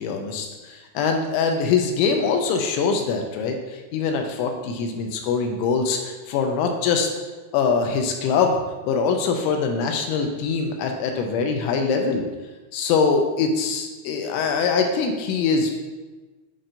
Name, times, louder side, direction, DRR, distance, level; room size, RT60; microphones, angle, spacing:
voice 1, 0.0-3.6 3.9-7.1 7.5-8.6 8.9-12.3 12.7-15.7, left 5 dB, 80° left, 4 dB, 2.8 m, -23 dB
8.9 x 5.5 x 2.5 m, 1.2 s
omnidirectional pair, 5.8 m